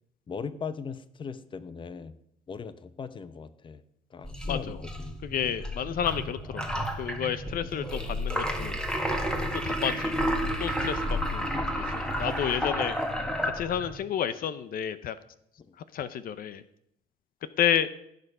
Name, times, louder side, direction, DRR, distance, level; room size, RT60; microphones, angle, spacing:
voice 1, 0.3-2.1 2.5-3.8 4.1-5.2 7.5-7.7 10.9-11.2 12.2-12.4, left 5 dB, 30° left, 14 dB, 0.8 m, -39 dB
sound 1, 4.2-14.0, equal, 5° left, 1.8 m, -31 dB
voice 2, 4.4-4.8 5.2-8.8 9.6-13.0 13.4-15.2 15.9-16.6 17.6-17.9, left 9 dB, 60° left, 14 dB, 0.8 m, -31 dB
16.0 x 6.8 x 5.5 m, 0.74 s
cardioid pair, 110°, 17 cm